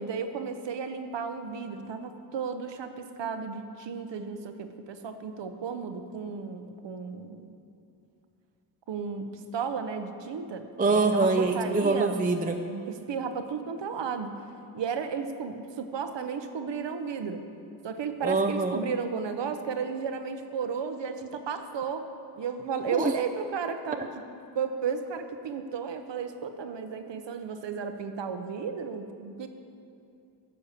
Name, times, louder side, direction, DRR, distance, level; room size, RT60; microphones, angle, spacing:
voice 1, 0.0-7.5 8.9-12.2 12.7-14.3 14.7-17.4 17.8-22.1 22.4-24.1 24.5-29.5, right 6 dB, 85° right, 7 dB, 0.9 m, -34 dB
voice 2, 10.8-12.6 18.2-18.8 22.9-23.1, right 3 dB, 20° right, 5 dB, 0.5 m, -24 dB
12.0 x 7.1 x 6.6 m, 2.6 s
wide cardioid pair, 110°, 42 cm